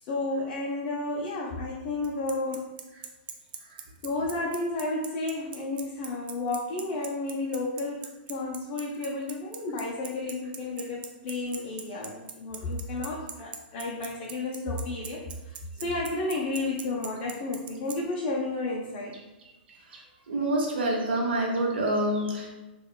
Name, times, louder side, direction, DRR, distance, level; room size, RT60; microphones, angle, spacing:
voice 1, 0.1-2.6 4.0-19.2, left 2 dB, 40° left, -3 dB, 0.5 m, -32 dB
Bicycle, 2.0-18.0, right 8 dB, 65° right, 0.4 m, -39 dB
voice 2, 20.3-22.5, right 1 dB, 80° right, -1 dB, 0.8 m, -27 dB
3.7 x 2.2 x 2.2 m, 1.1 s
hypercardioid pair, 125°, 6 cm